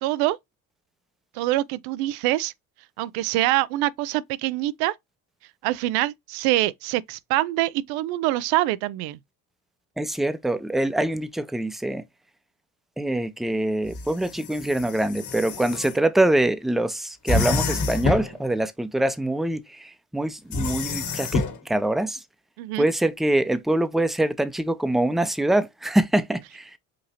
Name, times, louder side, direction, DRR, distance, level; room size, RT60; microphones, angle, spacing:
voice 1, 0.0-0.4 1.4-2.5 3.0-4.9 5.6-9.2 22.6-22.9, right 16 dB, 85° right, 0.5 m, -25 dB
voice 2, 10.0-12.0 13.0-22.2 22.8-26.8, right 1 dB, ahead, 0.6 m, -24 dB
sound 1, 13.9-15.9 17.3-18.4 20.5-21.6, left 3 dB, 55° left, 1.8 m, -27 dB
5.1 x 2.8 x 2.8 m
supercardioid pair, 85°, 36 cm